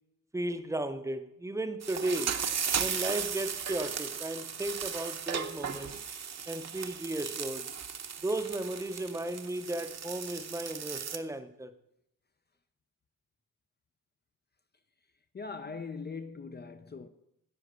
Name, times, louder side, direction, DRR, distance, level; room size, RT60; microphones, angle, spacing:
voice 1, 0.3-2.3 2.8-5.9 6.5-7.7 8.2-11.7, right 1 dB, 10° right, 0.7 m, -35 dB
sound 1, 1.8-11.2, right 7 dB, 50° right, 0.9 m, -36 dB
voice 2, 15.3-17.1, left 4 dB, 30° left, 0.5 m, -41 dB
10.0 x 5.4 x 8.0 m
wide cardioid pair, 125°, 34 cm